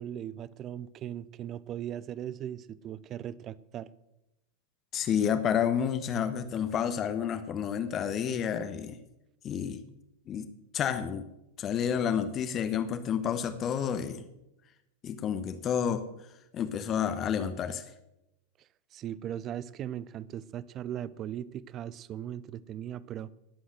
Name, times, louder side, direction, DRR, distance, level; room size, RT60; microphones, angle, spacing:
voice 1, 0.0-3.9 18.6-23.3, right 10 dB, 30° right, 0.6 m, -38 dB
voice 2, 4.9-9.0 9.4-9.8 10.3-10.5 10.7-11.3 11.6-14.2 15.0-16.0 16.5-17.8, left 8 dB, 30° left, 1.1 m, -30 dB
19.0 x 7.8 x 6.4 m
figure-of-eight pair, 90°, 0 cm